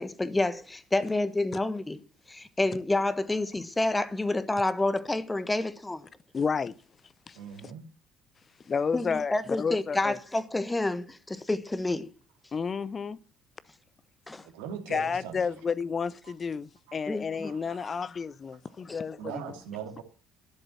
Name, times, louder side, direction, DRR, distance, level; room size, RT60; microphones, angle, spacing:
voice 1, 0.0-2.0 2.3-6.1 8.9-12.1 14.3-14.5 17.1-17.5 18.9-19.0, left 2 dB, 15° left, 1.2 m, -29 dB
voice 2, 6.3-6.8 7.3-7.4 8.7-10.2 12.5-13.2 14.9-19.6, left 5 dB, 35° left, 0.6 m, -31 dB
voice 3, 7.4-7.8 14.4-15.5 16.2-16.3 16.9-17.0 17.4-18.0 19.2-20.0, right 8 dB, 70° right, 2.3 m, -41 dB
12.0 x 10.5 x 7.5 m
figure-of-eight pair, 50°, 0 cm